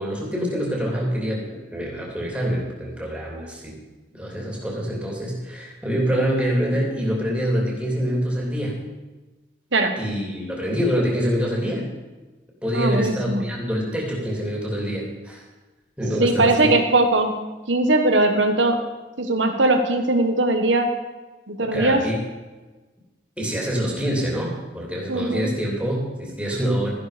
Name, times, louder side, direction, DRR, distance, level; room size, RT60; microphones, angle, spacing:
voice 1, 0.0-3.8 4.1-8.8 10.0-11.9 12.6-15.4 16.0-16.7 21.7-22.2 23.4-26.9, equal, 5° right, -2 dB, 2.9 m, -25 dB
voice 2, 12.7-13.4 16.2-17.3 17.7-18.8 19.2-20.9 21.5-22.0 25.1-25.5, right 2 dB, 85° right, 5 dB, 1.3 m, -20 dB
13.5 x 11.0 x 5.1 m, 1.2 s
head